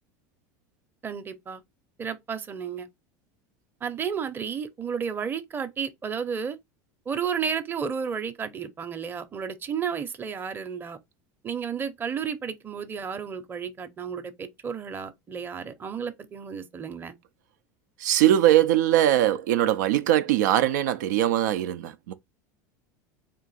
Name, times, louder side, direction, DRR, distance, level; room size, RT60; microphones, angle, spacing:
voice 1, 1.0-1.6 2.0-2.9 3.8-6.6 7.1-11.0 11.4-17.2, right 7 dB, 20° right, 0.7 m, -32 dB
voice 2, 18.0-22.1, right 12 dB, 85° right, 0.5 m, -21 dB
3.8 x 2.5 x 4.0 m
supercardioid pair, 120°, 10 cm